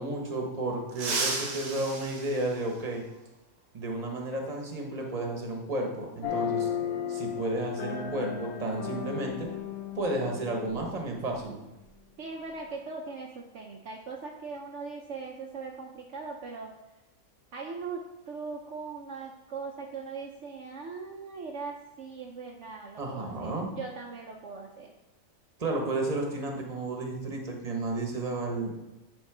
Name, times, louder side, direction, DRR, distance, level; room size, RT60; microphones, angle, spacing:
voice 1, 0.0-3.1 3.7-6.7 7.1-9.5 10.0-11.6 23.0-23.7 25.6-28.8, right 2 dB, 30° right, 1 dB, 1.2 m, -32 dB
sound 1, 0.9-3.3 5.0-5.1 6.3-6.4 8.0-8.2 8.5-8.7 9.2-11.4 11.7-11.9 12.3-12.8, right 3 dB, 85° right, 1.6 m, -36 dB
sound 2, 6.2-11.7, left 8 dB, 80° left, 1.3 m, -35 dB
voice 2, 12.2-16.7 17.5-24.9, right 4 dB, 60° right, 0 dB, 1.0 m, -40 dB
10.0 x 3.7 x 4.9 m, 0.98 s
omnidirectional pair, 1.5 m